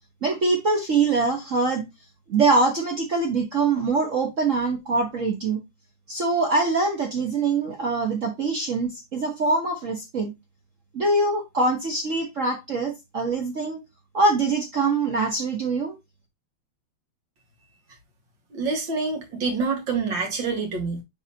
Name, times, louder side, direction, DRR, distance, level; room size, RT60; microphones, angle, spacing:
voice 1, 0.2-1.9 2.3-5.6 6.1-10.3 10.9-13.8 14.1-15.9, right 3 dB, 75° right, 0.7 m, -23 dB
voice 2, 18.5-21.0, right 4 dB, 45° right, 2.2 m, -26 dB
9.8 x 3.7 x 2.8 m
omnidirectional pair, 3.3 m